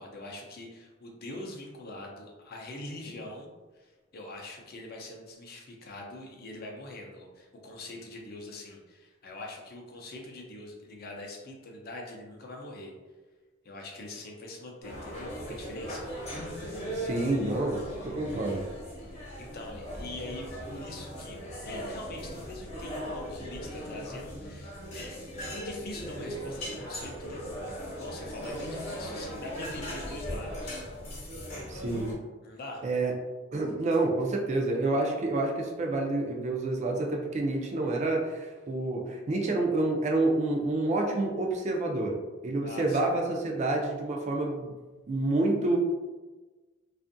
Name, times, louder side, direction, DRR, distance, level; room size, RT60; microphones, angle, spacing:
voice 1, 0.0-3.5 3.7-12.9 13.6-16.1 19.0-27.4 27.9-30.9 32.4-32.8 42.6-43.1, left 2 dB, 50° left, 0 dB, 0.5 m, -43 dB
sound 1, 14.8-32.1, equal, 35° left, 0.9 m, -38 dB
voice 2, 16.9-18.6 31.7-32.1 32.8-33.1 33.5-44.7 45.1-45.8, right 2 dB, 35° right, 1 dB, 0.4 m, -28 dB
2.5 x 2.4 x 2.5 m, 1.2 s
head